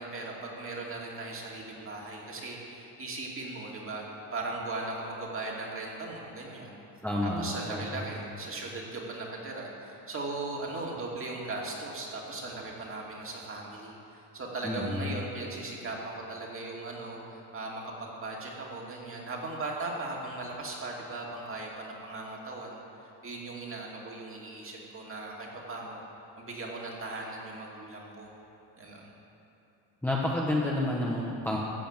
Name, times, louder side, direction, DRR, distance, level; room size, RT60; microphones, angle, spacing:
voice 1, 0.0-4.0 4.3-6.8 7.4-22.8 23.2-26.0 26.4-28.3 28.8-29.1, right 2 dB, 30° right, -2 dB, 2.5 m, -38 dB
voice 2, 7.0-8.0 14.6-15.1 30.0-31.6, left 1 dB, 5° left, -5 dB, 1.2 m, -30 dB
14.5 x 8.6 x 7.5 m, 3.0 s
cardioid pair, 140°, 44 cm